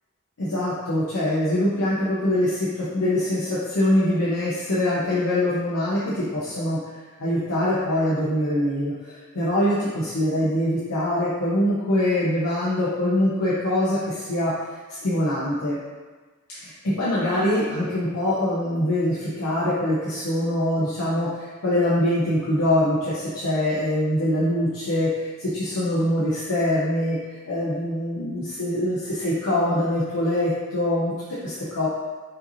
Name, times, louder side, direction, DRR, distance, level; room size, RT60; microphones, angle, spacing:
voice 1, 0.4-6.8 7.2-14.5 15.0-15.8 16.6-27.2 27.4-31.1 31.4-31.9, left 1 dB, 85° left, -9 dB, 0.8 m, -23 dB
5.3 x 2.7 x 2.7 m, 1.3 s
head